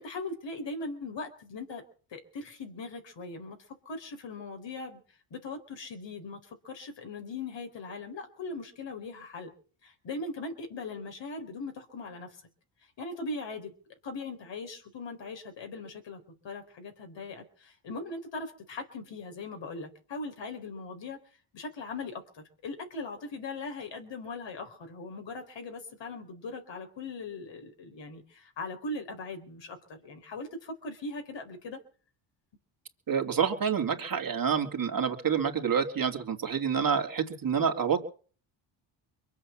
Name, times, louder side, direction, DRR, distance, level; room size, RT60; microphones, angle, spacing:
voice 1, 0.0-1.8 2.1-5.0 5.3-9.5 9.8-12.4 13.0-13.7 14.0-21.2 21.5-31.8, left 3 dB, 60° left, 5 dB, 4.3 m, -40 dB
voice 2, 33.1-38.1, right 7 dB, 40° right, 4 dB, 2.9 m, -28 dB
23.0 x 8.3 x 7.4 m, 0.43 s
cardioid pair, 85°, 49 cm